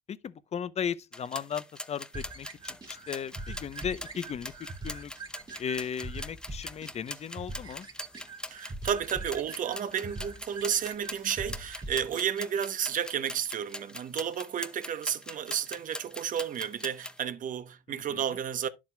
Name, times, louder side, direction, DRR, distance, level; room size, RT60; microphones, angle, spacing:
voice 1, 0.1-5.1 5.6-7.9 17.9-18.2, left 8 dB, 40° left, 0.7 m, -36 dB
sound 1, 1.1-17.2, left 1 dB, 5° left, 0.7 m, -42 dB
sound 2, 2.1-12.3, right 2 dB, 25° right, 2.0 m, -43 dB
voice 2, 8.5-18.7, right 8 dB, 50° right, 1.0 m, -32 dB
11.0 x 7.4 x 2.3 m
cardioid pair, 110°, 17 cm